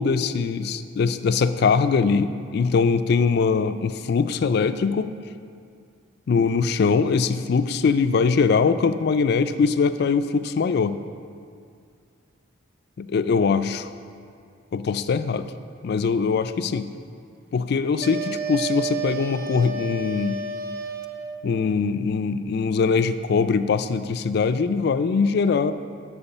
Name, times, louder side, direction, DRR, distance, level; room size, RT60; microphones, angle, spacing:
voice 1, 0.0-5.1 6.3-11.0 13.0-13.9 14.7-15.5 15.8-16.9 17.5-20.4 21.4-25.7, left 5 dB, 50° left, 12 dB, 0.3 m, -22 dB
sound 1, 18.0-21.5, right 4 dB, 50° right, 0.5 m, -31 dB
7.3 x 7.0 x 5.5 m, 2.3 s
head